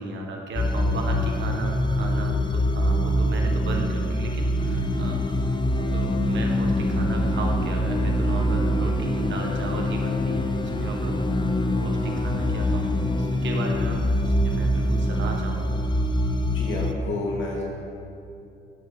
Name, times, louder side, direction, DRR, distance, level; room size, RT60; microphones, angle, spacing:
voice 1, 0.0-5.4 5.7-11.2 11.8-15.8, right 2 dB, 70° right, 1 dB, 1.6 m, -34 dB
sound 1, 0.5-16.9, left 1 dB, 20° left, 0.7 m, -24 dB
voice 2, 16.5-17.6, left 3 dB, 75° left, -3 dB, 2.5 m, -30 dB
13.0 x 6.6 x 4.2 m, 2.6 s
cardioid pair, 90°, 20 cm